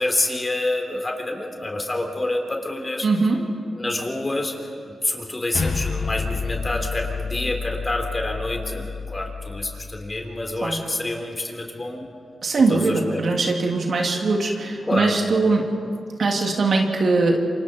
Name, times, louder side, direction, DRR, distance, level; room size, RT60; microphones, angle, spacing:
voice 1, 0.0-3.1 3.8-4.6 4.8-12.1 12.7-13.2 14.8-15.2, left 2 dB, 30° left, 3 dB, 3.8 m, -27 dB
voice 2, 3.0-3.4 10.6-10.8 12.4-15.7 16.2-17.4, right 3 dB, 65° right, 1 dB, 2.9 m, -21 dB
sound 1, 5.5-10.1, left 5 dB, 75° left, 2.0 m, -29 dB
28.0 x 25.5 x 4.6 m, 2.4 s
cardioid pair, 55°, 0 cm